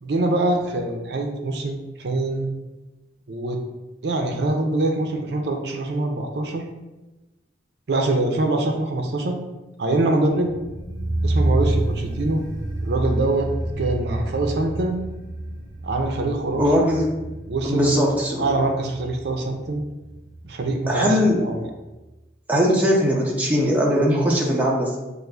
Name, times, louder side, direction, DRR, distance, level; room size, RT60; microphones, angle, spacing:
voice 1, 0.0-2.5 3.3-3.6 4.0-6.6 7.9-9.4 9.8-10.5 11.2-12.4 12.8-13.5 13.8-15.0 15.8-16.8 17.5-17.9 18.4-19.8 20.4-21.6, right 2 dB, 65° right, 3 dB, 0.5 m, -24 dB
sound 1, 10.3-21.3 21.6-21.7, right 1 dB, 45° right, 1.1 m, -28 dB
voice 2, 16.6-17.1 17.6-18.5 20.9-21.5 22.5-25.0, equal, 10° right, -3 dB, 0.5 m, -20 dB
6.3 x 2.4 x 2.2 m, 1.1 s
head